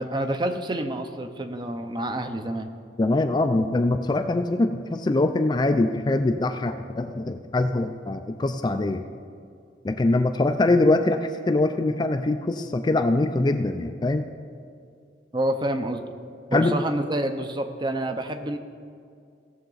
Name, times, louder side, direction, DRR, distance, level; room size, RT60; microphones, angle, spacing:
voice 1, 0.0-2.7 15.3-16.0 16.5-18.6, right 1 dB, 25° right, 7 dB, 0.6 m, -28 dB
voice 2, 3.0-9.0 9.8-14.3 16.5-16.8, left 2 dB, 25° left, 7 dB, 0.3 m, -23 dB
17.5 x 6.8 x 3.9 m, 2.3 s
head